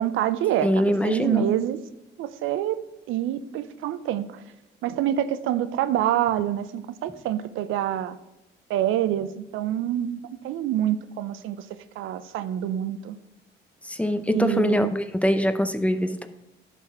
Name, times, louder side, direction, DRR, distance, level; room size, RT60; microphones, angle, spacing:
voice 1, 0.0-1.8 2.2-2.8 3.1-4.4 4.8-8.1 8.7-11.7 12.0-13.2 14.3-14.9, right 11 dB, 85° right, 12 dB, 0.5 m, -26 dB
voice 2, 0.6-1.5 13.8-16.3, equal, 5° left, 9 dB, 0.6 m, -23 dB
11.5 x 4.1 x 4.7 m, 0.94 s
cardioid pair, 90°, 20 cm